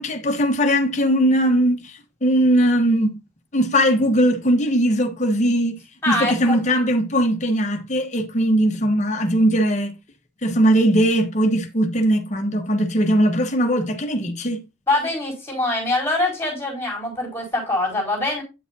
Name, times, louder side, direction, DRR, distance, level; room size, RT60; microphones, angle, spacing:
voice 1, 0.0-1.8 2.2-3.1 3.5-5.8 6.1-9.9 10.4-14.6, equal, 40° left, 1.1 m, -19 dB
voice 2, 6.0-6.6 14.9-18.4, left 2 dB, 15° left, 4.6 m, -23 dB
9.3 x 7.1 x 2.7 m
head